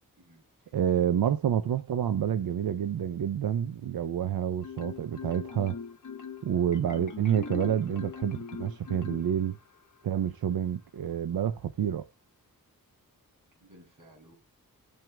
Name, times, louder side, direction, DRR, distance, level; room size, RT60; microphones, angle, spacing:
voice 1, 0.2-0.7 10.1-10.3 13.6-14.3, right 1 dB, 65° right, 6.3 m, -57 dB
voice 2, 0.7-5.8 6.4-9.6 10.0-12.0, right 9 dB, 85° right, 0.6 m, -28 dB
Marimba xylophone, 4.6-9.8, left 5 dB, 60° left, 1.0 m, -41 dB
18.0 x 6.0 x 2.2 m
wide cardioid pair, 85°, 35 cm